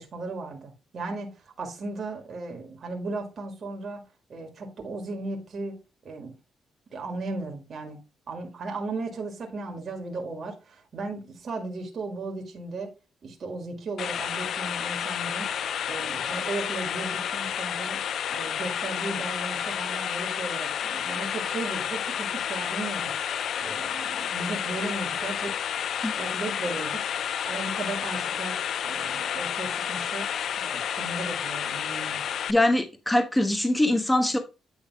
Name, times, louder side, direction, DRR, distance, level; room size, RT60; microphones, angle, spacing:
voice 1, 0.0-4.0 4.3-5.8 6.1-6.3 6.9-8.0 8.3-12.9 13.2-15.5 15.9-18.0 18.3-23.1 23.6-25.6 26.2-27.0 27.4-30.3 30.6-32.2, right 3 dB, 50° right, 1.8 m, -36 dB
sound 1, 14.0-32.5, left 9 dB, 65° left, 0.4 m, -30 dB
voice 2, 32.5-34.4, left 1 dB, 10° left, 1.2 m, -23 dB
9.2 x 3.5 x 4.6 m
cardioid pair, 90°, 0 cm